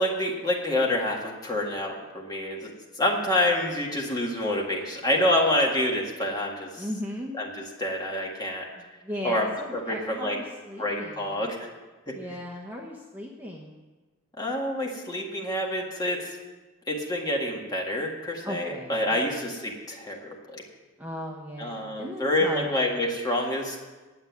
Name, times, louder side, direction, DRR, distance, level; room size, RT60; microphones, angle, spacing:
voice 1, 0.0-2.7 3.0-6.8 7.4-8.7 9.2-10.4 10.8-11.7 12.1-12.2 14.4-16.4 16.9-20.6 21.6-23.8, left 1 dB, 20° left, -1 dB, 1.8 m, -27 dB
voice 2, 6.8-7.3 8.8-11.5 12.1-13.9 18.4-19.4 21.0-22.8, equal, 10° right, -3 dB, 1.0 m, -37 dB
9.6 x 7.9 x 9.2 m, 1.3 s
head